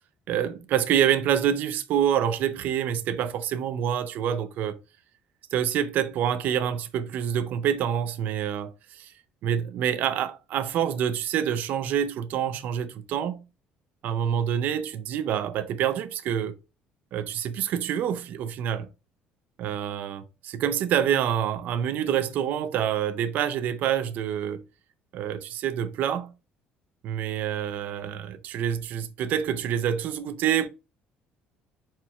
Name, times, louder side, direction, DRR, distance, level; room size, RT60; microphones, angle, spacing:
voice 1, 0.3-4.8 5.5-9.1 9.4-13.5 14.0-16.5 17.1-18.9 19.6-24.6 25.1-26.3 27.0-30.7, right 9 dB, 60° right, 0.5 m, -27 dB
4.4 x 4.3 x 2.4 m
cardioid pair, 135°, 3 cm